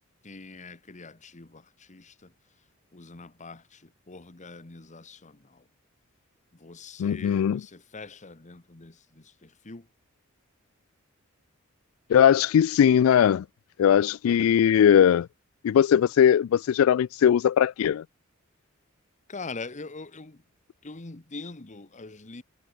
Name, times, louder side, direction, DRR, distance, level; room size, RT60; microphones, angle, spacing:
voice 1, 0.2-1.5 1.9-2.0 2.9-3.6 4.1-5.3 6.6-8.9 9.7-9.8 19.3-20.4 20.8-22.4, left 3 dB, 35° left, 1.2 m, -42 dB
voice 2, 7.0-7.6 12.1-13.4 13.8-15.3 15.6-18.0, left 9 dB, 75° left, 0.3 m, -20 dB
head